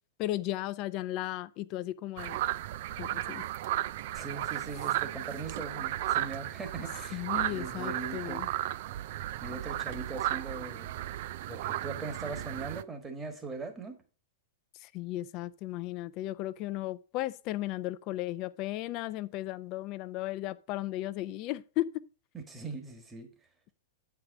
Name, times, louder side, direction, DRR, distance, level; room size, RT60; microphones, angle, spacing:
voice 1, 0.2-2.4 3.0-3.4 7.1-8.5 14.8-22.0, left 15 dB, 40° left, 0.5 m, -35 dB
sound 1, 2.2-12.8, right 14 dB, 55° right, 0.3 m, -34 dB
voice 2, 4.1-8.5 9.4-10.9 11.5-14.0 22.3-23.3, right 3 dB, 15° right, 1.6 m, -40 dB
8.5 x 4.8 x 4.9 m
hypercardioid pair, 110°, 0 cm